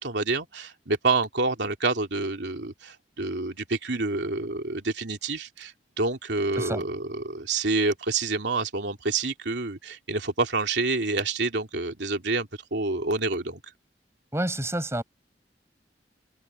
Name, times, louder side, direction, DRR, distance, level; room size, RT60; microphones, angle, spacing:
voice 1, 0.0-13.6, right 3 dB, 85° right, 2.8 m, -28 dB
voice 2, 14.3-15.0, right 1 dB, 15° right, 5.1 m, -28 dB
head